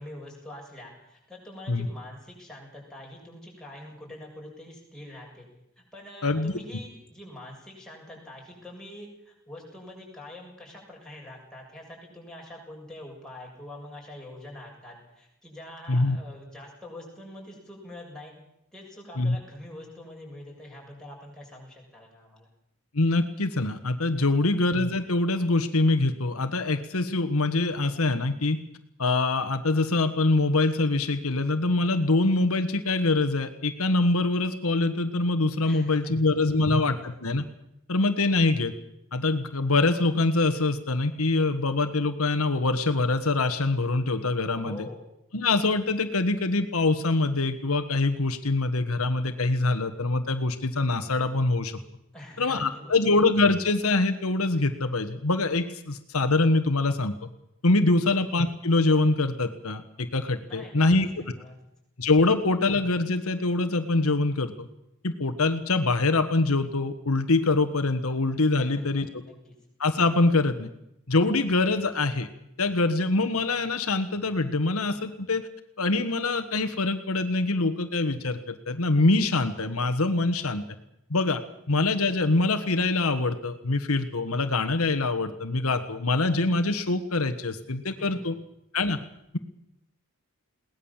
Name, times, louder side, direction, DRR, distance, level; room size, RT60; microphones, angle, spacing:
voice 1, 0.0-5.5 5.9-18.3 18.7-22.5 35.6-36.4 44.5-45.1 52.1-53.0 57.9-58.1 60.4-61.5 68.5-69.5 88.0-88.3, left 1 dB, 5° left, -3 dB, 7.3 m, -45 dB
voice 2, 6.2-6.5 15.9-16.2 19.2-19.4 22.9-28.6 29.0-37.4 37.9-38.7 39.1-44.8 45.3-51.8 52.4-57.1 57.6-61.1 62.0-64.7 65.0-69.1 69.8-70.7 71.1-72.3 72.6-75.5 75.8-80.6 81.1-81.4 81.7-88.4 88.7-89.0, left 2 dB, 70° left, 7 dB, 1.4 m, -24 dB
21.5 x 18.5 x 7.4 m, 0.80 s
head